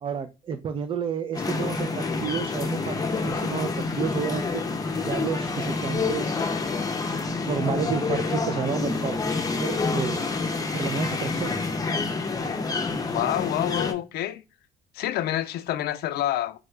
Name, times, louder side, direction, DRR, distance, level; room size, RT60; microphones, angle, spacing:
voice 1, 0.0-4.6 5.0-6.5 7.0-9.2 9.6-10.3 10.7-11.6, right 6 dB, 30° right, 0.3 m, -31 dB
sound 1, 1.3-13.9, left 4 dB, 20° left, 0.6 m, -28 dB
voice 2, 13.1-14.4 14.9-16.6, left 13 dB, 70° left, 0.5 m, -27 dB
3.7 x 2.2 x 3.2 m
cardioid pair, 110°, 17 cm